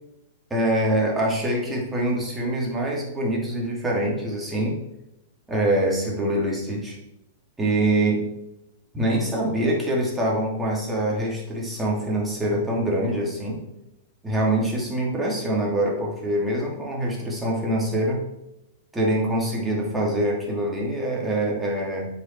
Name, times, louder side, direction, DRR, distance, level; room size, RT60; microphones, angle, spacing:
voice 1, 0.5-4.8 5.5-7.0 7.6-8.3 8.9-13.6 14.2-18.2 18.9-22.1, right 1 dB, 10° right, -3 dB, 2.8 m, -24 dB
7.9 x 5.5 x 4.6 m, 0.91 s
figure-of-eight pair, 105°, 0 cm